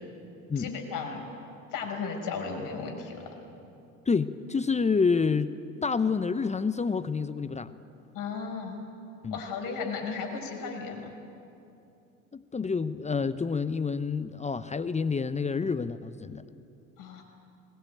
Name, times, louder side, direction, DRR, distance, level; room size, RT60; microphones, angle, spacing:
voice 1, 0.6-1.2 1.7-3.3 8.1-8.8 9.3-11.1 17.0-17.2, left 5 dB, 55° left, 2 dB, 6.0 m, -35 dB
voice 2, 4.1-7.7 9.2-9.4 12.3-16.4, left 5 dB, 15° left, 13 dB, 0.8 m, -28 dB
21.0 x 20.5 x 9.3 m, 2.7 s
hypercardioid pair, 70°, 40 cm